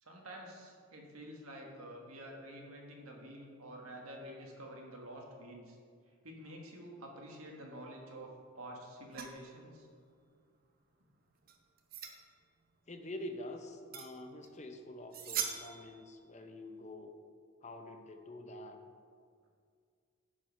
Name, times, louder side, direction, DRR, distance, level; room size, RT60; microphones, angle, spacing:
voice 1, 0.0-5.8 6.2-9.9, right 1 dB, 90° right, 0 dB, 1.6 m, -49 dB
sound 1, 9.1-9.4 11.4-12.2 13.9-14.1 14.4-14.5 15.1-16.0, right 7 dB, 45° right, 0.7 m, -40 dB
voice 2, 12.9-17.1 17.6-18.8, left 1 dB, 30° left, 5 dB, 0.7 m, -46 dB
10.5 x 4.8 x 5.7 m, 2.1 s
head